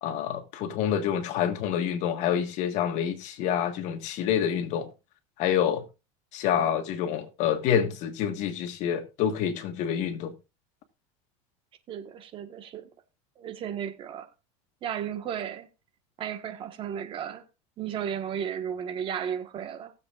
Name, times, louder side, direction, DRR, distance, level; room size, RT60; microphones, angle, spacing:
voice 1, 0.0-4.9 5.4-5.8 6.3-10.3, left 9 dB, 50° left, 1.5 m, -27 dB
voice 2, 11.9-12.9 13.4-14.3 14.8-15.7 16.2-17.4 17.8-19.9, right 9 dB, 35° right, 1.4 m, -34 dB
19.0 x 7.5 x 2.4 m
supercardioid pair, 145°, 16 cm